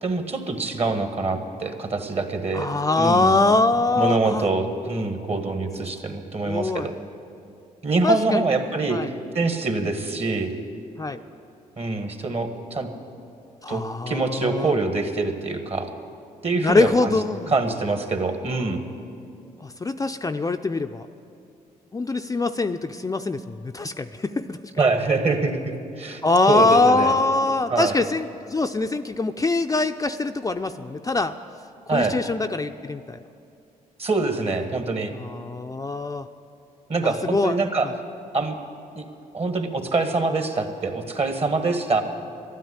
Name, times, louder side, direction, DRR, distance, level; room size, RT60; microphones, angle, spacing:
voice 1, 0.0-2.7 3.0-3.4 4.0-6.9 7.8-9.0 9.3-10.5 11.8-12.9 13.7-15.9 16.4-17.2 17.5-18.8 24.8-26.2 26.5-27.1 27.7-28.0 31.9-32.2 34.0-35.1 36.9-37.9 38.3-38.6 38.9-39.0 39.3-42.0, right 3 dB, 40° right, 6 dB, 1.6 m, -24 dB
voice 2, 2.5-4.5 6.4-6.9 8.0-8.5 8.9-9.1 11.0-11.2 13.6-14.7 16.6-17.5 19.6-21.1 21.9-24.6 26.2-31.4 31.9-33.2 35.1-36.3 37.0-37.6 37.8-37.9, left 3 dB, 20° left, 7 dB, 0.5 m, -23 dB
12.0 x 9.4 x 9.7 m, 2.5 s
supercardioid pair, 60°, 16 cm